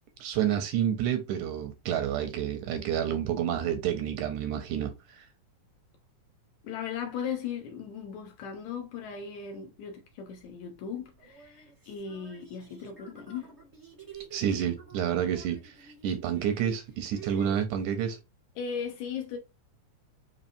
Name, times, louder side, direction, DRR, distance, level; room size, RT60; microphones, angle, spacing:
voice 1, 0.2-5.3 14.3-18.2, right 9 dB, 80° right, 1.8 m, -29 dB
voice 2, 6.6-13.6 18.6-19.4, left 7 dB, 80° left, 1.7 m, -37 dB
sound 1, 10.4-10.5 11.2-17.5, right 7 dB, 25° right, 0.7 m, -50 dB
5.3 x 2.9 x 2.5 m
omnidirectional pair, 3.7 m